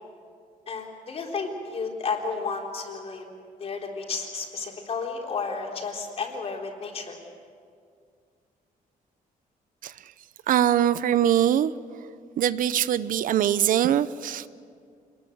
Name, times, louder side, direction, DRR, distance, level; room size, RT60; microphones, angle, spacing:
voice 1, 0.7-3.3 3.6-7.2, left 4 dB, 45° left, 0 dB, 3.9 m, -32 dB
voice 2, 10.5-11.7 12.4-14.5, right 10 dB, 70° right, 15 dB, 0.7 m, -22 dB
26.5 x 20.5 x 8.1 m, 2.2 s
cardioid pair, 150°, 15 cm